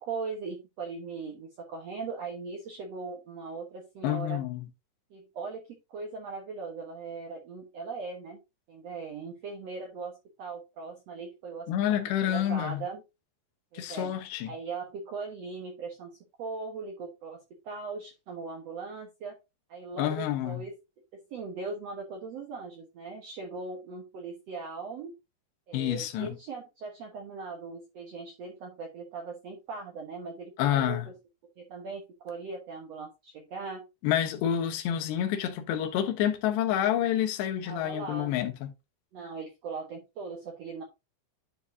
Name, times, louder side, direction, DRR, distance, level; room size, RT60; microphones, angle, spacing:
voice 1, 0.0-4.4 5.1-5.6 5.9-8.4 8.7-13.0 13.7-14.1 14.5-19.4 19.7-20.7 21.3-25.1 25.7-31.0 31.6-33.8 37.6-38.3 39.1-40.8, right 4 dB, 75° right, 1.5 m, -39 dB
voice 2, 4.0-4.7 11.7-12.8 13.7-14.5 20.0-20.6 25.7-26.4 30.6-31.1 34.0-38.7, left 11 dB, 80° left, 3.2 m, -28 dB
11.0 x 4.7 x 2.7 m
omnidirectional pair, 5.0 m